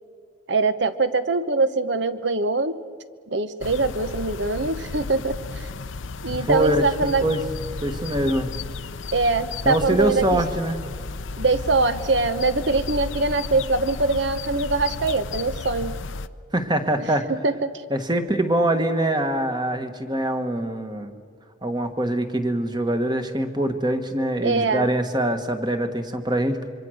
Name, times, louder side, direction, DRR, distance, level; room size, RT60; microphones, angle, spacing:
voice 1, 0.5-2.8 3.3-5.7 6.2-7.3 9.1-10.4 11.4-16.0 17.0-17.1 17.4-17.8 18.1-18.2 24.4-24.9, right 3 dB, 60° right, 12 dB, 1.0 m, -23 dB
Calm air bird song, 3.6-16.3, left 3 dB, 70° left, 0.7 m, -33 dB
voice 2, 6.4-6.8 7.2-7.4 7.8-8.5 9.6-10.8 16.5-17.3 17.9-21.1 21.6-26.7, right 1 dB, 20° right, 7 dB, 1.5 m, -23 dB
26.5 x 24.0 x 6.4 m, 2.1 s
head